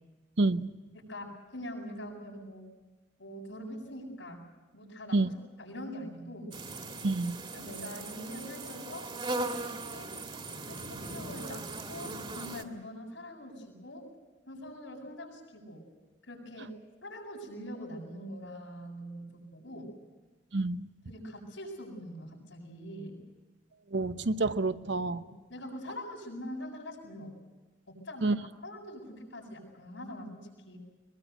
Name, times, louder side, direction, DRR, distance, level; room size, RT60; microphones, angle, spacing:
voice 1, 0.4-0.7 5.1-5.3 7.0-7.4 20.5-20.9 23.9-25.2 28.2-28.4, right 2 dB, 70° right, 1.0 m, -28 dB
voice 2, 0.9-2.7 3.2-4.4 4.7-5.3 5.6-6.6 7.5-9.1 9.6-10.1 10.7-14.1 14.4-15.8 16.2-16.7 17.0-19.9 21.1-23.2 25.2-27.3 27.9-30.8, equal, 85° left, 7.8 m, -43 dB
sound 1, 6.5-12.6, right 2 dB, 25° right, 1.9 m, -39 dB
22.5 x 22.0 x 8.1 m
head